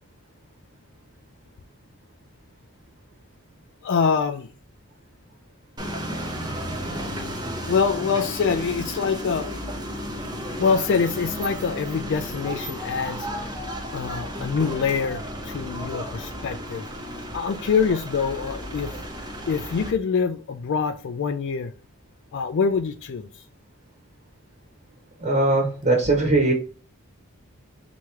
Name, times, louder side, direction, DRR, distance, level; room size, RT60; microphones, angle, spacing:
voice 1, 3.8-4.5 7.6-9.6 10.6-13.3 13.9-16.9 17.3-18.9 19.5-21.7 22.3-23.4, left 5 dB, 55° left, 8 dB, 0.3 m, -25 dB
sound 1, 5.8-19.9, equal, 20° right, 0.8 m, -33 dB
voice 2, 25.2-26.5, right 2 dB, 35° right, -1 dB, 1.3 m, -20 dB
4.6 x 3.0 x 3.4 m, 0.37 s
head